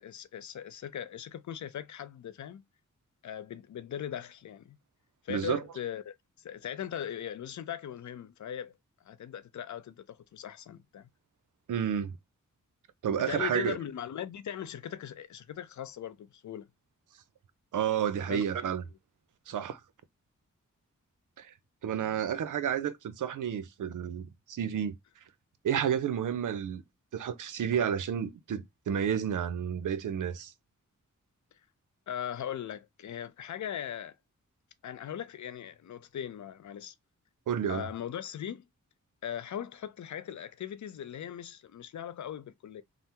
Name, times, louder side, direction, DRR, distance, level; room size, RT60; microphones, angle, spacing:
voice 1, 0.0-2.6 3.2-4.8 5.2-6.1 6.4-8.7 9.0-11.1 13.0-16.7 18.2-18.4 32.1-34.1 34.8-36.9 37.7-38.6 39.2-42.8, left 9 dB, 65° left, 0.5 m, -39 dB
voice 2, 5.3-5.6 11.7-12.2 13.0-13.8 17.7-18.8 19.5-19.8 21.4-21.5 21.8-25.0 25.6-26.8 27.1-30.5 37.5-37.9, right 8 dB, 75° right, 0.5 m, -31 dB
3.3 x 2.0 x 2.8 m
cardioid pair, 65°, 31 cm